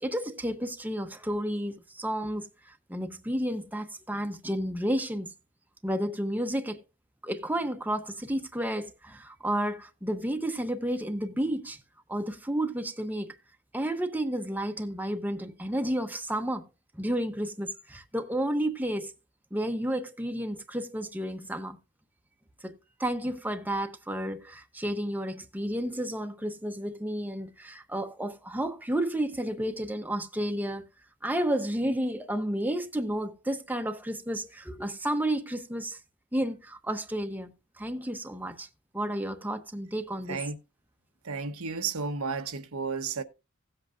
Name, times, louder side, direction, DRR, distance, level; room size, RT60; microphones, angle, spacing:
voice 1, 0.0-5.3 5.8-6.8 7.2-11.8 12.1-13.3 13.7-16.7 16.9-19.1 19.5-21.8 22.6-30.8 31.2-36.0 36.3-38.7 38.9-40.4, right 1 dB, 10° right, 0.9 m, -31 dB
voice 2, 41.2-43.2, right 5 dB, 85° right, 1.1 m, -32 dB
17.0 x 7.9 x 2.5 m
head